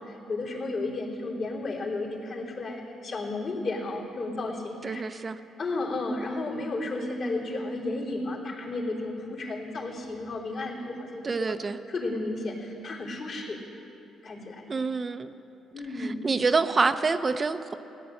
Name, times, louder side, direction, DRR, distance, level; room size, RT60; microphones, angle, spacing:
voice 1, 0.0-5.0 5.6-11.6 11.9-13.6 14.2-14.7 15.7-16.3, left 2 dB, 55° left, -3 dB, 3.2 m, -33 dB
voice 2, 4.8-5.4 11.2-11.8 14.7-15.3 16.0-17.7, right 4 dB, 35° right, 9 dB, 0.5 m, -27 dB
17.0 x 10.0 x 7.7 m, 2.8 s
cardioid pair, 90°, 0 cm